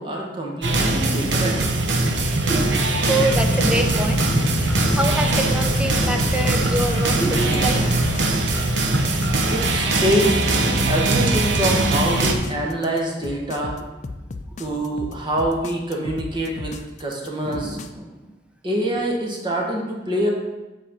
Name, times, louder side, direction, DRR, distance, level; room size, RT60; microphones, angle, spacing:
voice 1, 0.0-1.6 2.5-3.1 7.2-7.6 9.5-10.4 10.9-13.8 14.6-16.7 17.0-17.8 18.6-20.3, right 1 dB, 25° right, -1 dB, 1.3 m, -25 dB
sound 1, 0.6-12.3, right 2 dB, 85° right, 0.8 m, -21 dB
sound 2, 2.1-17.9, left 3 dB, 40° left, 0.4 m, -34 dB
voice 2, 3.1-4.3 4.9-7.8 17.4-18.3, right 1 dB, 5° right, 4 dB, 0.6 m, -26 dB
sound 3, 3.3-8.4, equal, 60° left, 0.9 m, -26 dB
7.6 x 4.3 x 5.1 m, 1.1 s
head